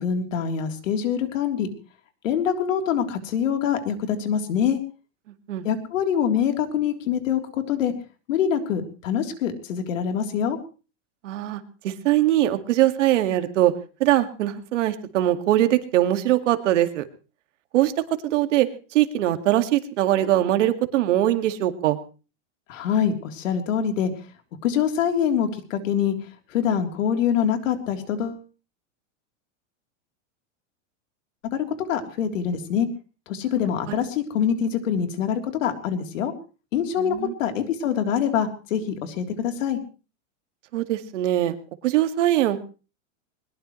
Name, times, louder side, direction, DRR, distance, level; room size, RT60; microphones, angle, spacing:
voice 1, 0.0-1.7 2.2-4.8 5.6-7.4 7.7-7.9 8.3-10.6 22.7-24.1 24.6-26.1 26.5-28.4 31.5-32.9 33.3-36.3 36.7-37.1 37.4-39.8, left 8 dB, 80° left, 5 dB, 3.5 m, -24 dB
voice 2, 11.2-13.7 14.0-17.1 17.7-17.9 18.2-22.0 37.0-37.3 40.7-41.6 41.8-42.6, right 13 dB, 70° right, 9 dB, 2.1 m, -22 dB
21.0 x 21.0 x 3.2 m, 0.36 s
supercardioid pair, 175°, 38 cm